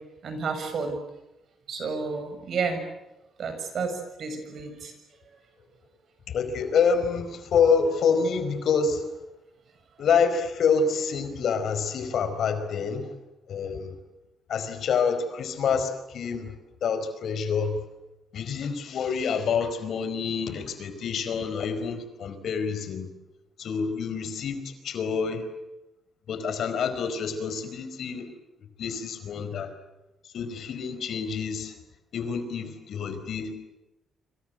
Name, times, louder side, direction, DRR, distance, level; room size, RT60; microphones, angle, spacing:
voice 1, 0.2-1.0 1.7-2.8 3.4-4.9, right 4 dB, 60° right, 8 dB, 7.0 m, -31 dB
voice 2, 6.3-9.1 10.0-13.1 13.5-14.0 14.5-16.5 16.8-17.8 18.3-23.1 23.6-25.4 26.3-28.3 28.8-29.7 30.3-31.7 32.1-33.5, left 6 dB, 65° left, 10 dB, 4.7 m, -27 dB
26.5 x 26.5 x 8.0 m, 0.95 s
cardioid pair, 105°, 0 cm